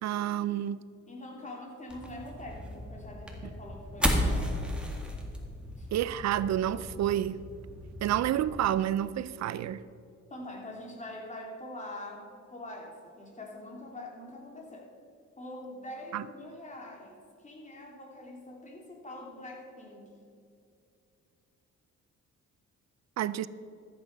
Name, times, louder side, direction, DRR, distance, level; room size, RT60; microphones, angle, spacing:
voice 1, 0.0-0.8 5.9-7.4 8.0-9.8 16.1-16.2 23.2-23.5, right 11 dB, 60° right, 0.5 m, -29 dB
voice 2, 1.1-4.6 5.8-5.9 10.3-14.9 15.4-20.2, left 1 dB, 25° left, 2.9 m, -44 dB
sound 1, 1.9-8.6, equal, 5° right, 2.0 m, -34 dB
14.0 x 8.6 x 5.3 m
cardioid pair, 90°, 30 cm